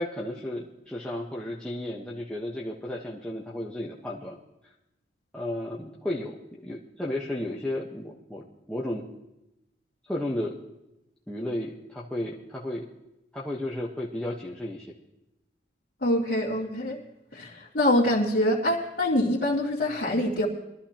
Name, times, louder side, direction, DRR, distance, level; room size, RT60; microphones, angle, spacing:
voice 1, 0.0-4.4 5.3-6.4 6.6-8.4 8.7-9.0 10.1-10.6 11.3-12.8 13.3-14.9, left 1 dB, 5° left, -5 dB, 1.1 m, -33 dB
voice 2, 16.0-17.0 17.3-20.5, left 1 dB, 55° left, -8 dB, 2.4 m, -25 dB
22.5 x 13.5 x 2.9 m, 0.91 s
head